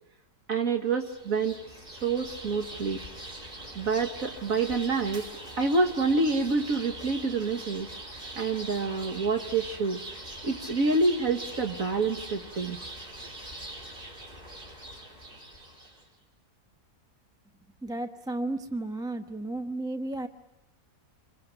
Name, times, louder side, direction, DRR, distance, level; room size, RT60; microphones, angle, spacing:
voice 1, 0.5-3.0 3.8-5.3 5.6-7.9 8.4-10.0 10.4-12.8, right 3 dB, 60° right, 5 dB, 1.9 m, -27 dB
sound 1, 0.9-16.1, right 1 dB, 35° right, 4.6 m, -43 dB
voice 2, 17.8-20.3, right 2 dB, 5° right, 6 dB, 1.0 m, -33 dB
27.0 x 22.0 x 9.2 m, 1.0 s
omnidirectional pair, 1.7 m